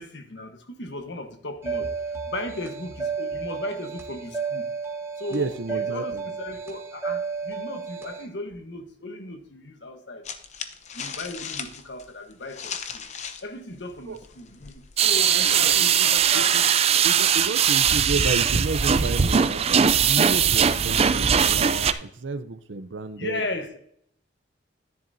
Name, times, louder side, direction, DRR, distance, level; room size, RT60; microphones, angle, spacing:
voice 1, 0.0-1.9 2.2-4.7 5.2-10.3 10.9-13.0 13.4-16.6 23.2-23.8, left 2 dB, 70° left, 1.3 m, -36 dB
sound 1, 1.6-8.2, right 5 dB, 15° right, 1.4 m, -32 dB
voice 2, 5.3-6.2 14.1-14.2 15.1-16.1 16.3-16.7 17.0-23.4, right 3 dB, 75° right, 0.7 m, -32 dB
sound 2, 10.2-13.5 13.8-16.3, left 6 dB, 40° left, 0.7 m, -38 dB
sound 3, 15.0-21.9, right 7 dB, 35° right, 0.4 m, -20 dB
10.5 x 10.5 x 2.7 m
head